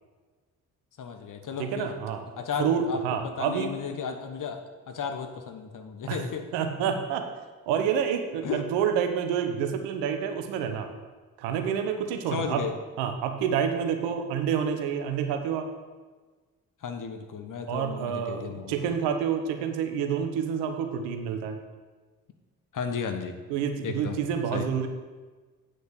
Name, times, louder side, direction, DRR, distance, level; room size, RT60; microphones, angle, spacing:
voice 1, 1.0-1.9 2.4-6.5 8.4-8.6 12.3-12.7 16.8-18.9 22.7-23.4 23.8-24.2 24.5-24.7, left 6 dB, 45° left, 6 dB, 1.3 m, -34 dB
voice 2, 1.6-2.2 2.6-3.7 6.1-6.2 6.5-7.2 7.7-10.9 11.4-12.6 13.0-15.7 17.7-21.6 23.5-24.9, right 7 dB, 70° right, 6 dB, 1.0 m, -28 dB
8.5 x 6.3 x 6.5 m, 1.3 s
hypercardioid pair, 45°, 42 cm